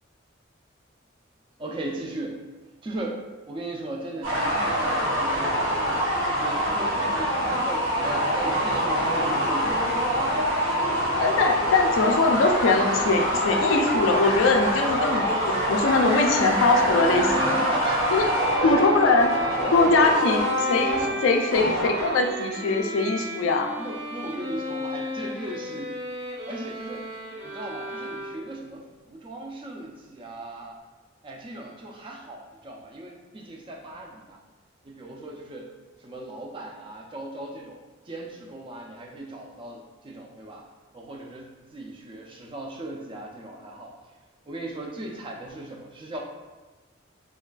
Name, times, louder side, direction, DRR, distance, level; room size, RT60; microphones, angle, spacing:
voice 1, 1.6-2.4 2.8-5.8 6.2-9.9 17.2-19.2 19.9-20.4 21.2-21.4 23.8-26.0 26.4-27.1 27.4-30.8 31.2-34.4 34.8-35.7 36.0-40.6 40.9-44.2 44.5-46.2, right 2 dB, 25° right, 0 dB, 0.3 m, -37 dB
sound 1, 4.2-22.4, equal, 75° right, 1.1 m, -25 dB
voice 2, 11.2-17.3 18.1-18.3 18.6-19.3 19.6-20.4 20.7-20.9 21.2-23.7, left 3 dB, 75° left, 4 dB, 0.3 m, -22 dB
sound 2, 13.7-28.7, equal, 55° right, 0.8 m, -35 dB
3.2 x 2.3 x 2.2 m, 1.3 s
head